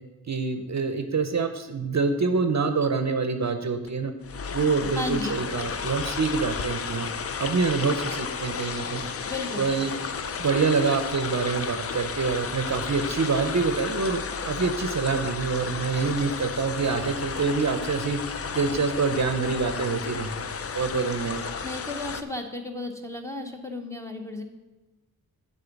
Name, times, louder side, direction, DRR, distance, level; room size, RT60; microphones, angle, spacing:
voice 1, 0.3-4.1 4.5-7.1 7.4-9.0 9.6-10.0 10.4-14.2 14.4-18.2 18.5-20.3 20.7-21.5, right 4 dB, 50° right, 8 dB, 0.6 m, -26 dB
sound 1, 3.9-4.0 4.2-22.2, left 6 dB, 40° left, 0.4 m, -33 dB
voice 2, 5.0-5.4 9.2-9.7 21.6-24.4, left 2 dB, 10° left, 3 dB, 0.8 m, -34 dB
9.0 x 3.7 x 7.0 m, 1.2 s
wide cardioid pair, 115°, 36 cm